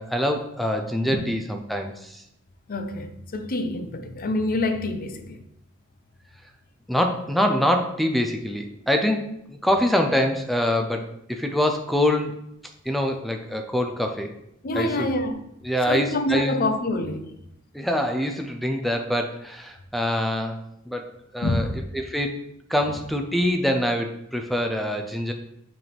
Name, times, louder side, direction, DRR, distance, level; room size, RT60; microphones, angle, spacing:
voice 1, 0.0-2.2 6.9-12.3 12.8-14.3 14.7-15.1 15.6-16.7 17.7-20.6 20.9-21.7 21.9-22.4 22.7-25.3, left 1 dB, ahead, 0.5 m, -25 dB
voice 2, 2.7-5.4 14.6-15.4 15.9-17.3 21.4-21.8, left 2 dB, 45° left, 0.6 m, -26 dB
6.2 x 3.5 x 4.4 m
head